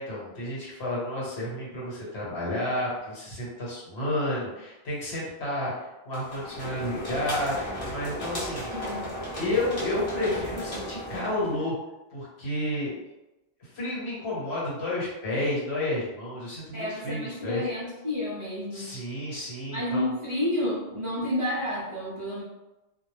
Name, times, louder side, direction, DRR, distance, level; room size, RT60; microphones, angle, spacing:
voice 1, 0.0-5.7 6.1-8.7 9.4-11.7 12.1-12.9 13.6-17.7 18.7-20.1, left 1 dB, 70° left, -6 dB, 1.2 m, -31 dB
sound 1, 6.1-11.6, equal, 35° left, 0.7 m, -35 dB
voice 2, 8.7-9.0 16.7-18.9 19.7-22.4, left 1 dB, 40° right, -8 dB, 0.5 m, -30 dB
2.3 x 2.0 x 3.0 m, 1.0 s
omnidirectional pair, 1.1 m